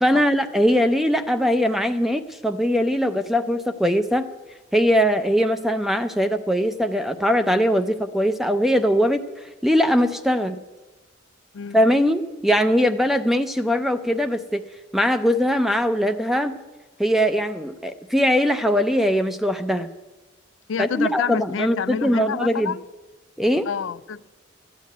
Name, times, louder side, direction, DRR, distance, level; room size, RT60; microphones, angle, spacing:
voice 1, 0.0-4.3 4.7-9.2 9.6-10.6 11.7-14.6 14.9-16.6 17.0-19.9 20.8-22.7 23.4-23.7, equal, ahead, 0.5 m, -21 dB
voice 2, 20.7-22.8 23.7-24.3, left 7 dB, 85° left, 0.4 m, -29 dB
13.5 x 8.4 x 9.3 m
head